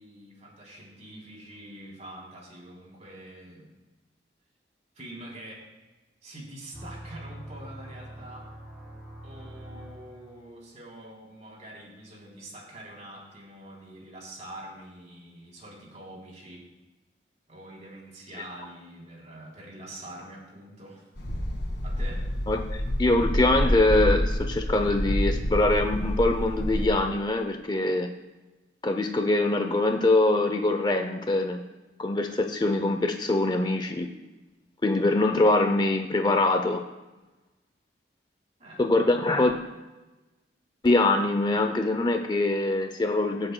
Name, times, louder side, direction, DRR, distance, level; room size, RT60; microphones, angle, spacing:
voice 1, 0.0-3.7 4.9-5.6 6.2-8.5 9.2-16.7 17.5-21.1 21.8-22.2 38.6-38.8, right 1 dB, 40° right, -3 dB, 3.3 m, -45 dB
sound 1, 6.7-10.6, right 1 dB, 15° right, 3.2 m, -44 dB
sound 2, 21.2-26.9, equal, 80° left, 1.7 m, -28 dB
voice 2, 22.5-28.1 28.8-31.6 32.0-34.1 34.8-36.8 38.8-39.5 40.8-43.5, left 2 dB, 25° left, 6 dB, 0.5 m, -23 dB
23.0 x 7.8 x 2.2 m, 1.1 s
head